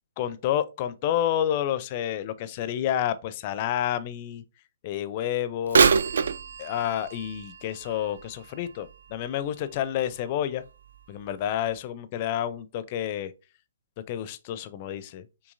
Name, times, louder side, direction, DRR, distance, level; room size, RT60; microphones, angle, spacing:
voice 1, 0.2-4.4 4.8-5.9 6.6-10.6 11.1-13.3 14.1-15.5, left 10 dB, 30° left, 0.4 m, -29 dB
Bird vocalization bird call bird song / Telephone, 5.7-9.5 10.0-10.1 10.9-11.0 11.7-11.8, right 5 dB, 55° right, 0.3 m, -26 dB
6.1 x 2.8 x 2.5 m
figure-of-eight pair, 130°, 0 cm